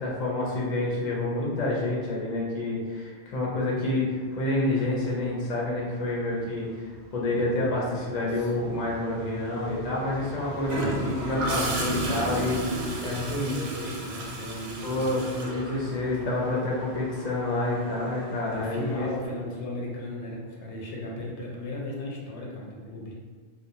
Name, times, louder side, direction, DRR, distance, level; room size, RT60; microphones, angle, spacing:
voice 1, 0.0-12.6 13.0-13.5 14.8-19.1, left 2 dB, 45° left, -4 dB, 0.6 m, -28 dB
Traffic noise roadway noise, 5.5-19.3, right 1 dB, 60° right, 0.6 m, -39 dB
voice 2, 8.3-8.6 12.8-15.1 15.4-15.7 18.5-23.1, left 1 dB, 85° left, -3 dB, 0.9 m, -36 dB
Gurgling / Toilet flush, 10.7-16.4 18.4-18.7, right 1 dB, 85° right, 0.9 m, -34 dB
2.4 x 2.1 x 2.8 m, 1.5 s
omnidirectional pair, 1.2 m